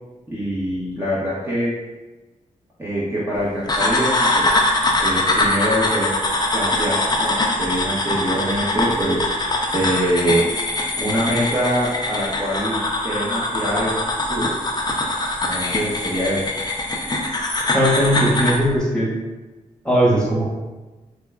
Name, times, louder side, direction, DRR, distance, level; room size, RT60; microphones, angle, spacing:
voice 1, 0.3-1.7 2.8-4.5 5.0-6.2 6.5-10.5 11.0-13.9 14.3-14.5 15.5-16.4, equal, 20° right, -9 dB, 0.9 m, -24 dB
sound 1, 3.7-18.6, left 2 dB, 30° left, 0.5 m, -22 dB
voice 2, 17.7-19.1 19.8-20.4, equal, 5° left, -7 dB, 1.3 m, -18 dB
4.6 x 2.2 x 2.4 m, 1.2 s
cardioid pair, 65°, 14 cm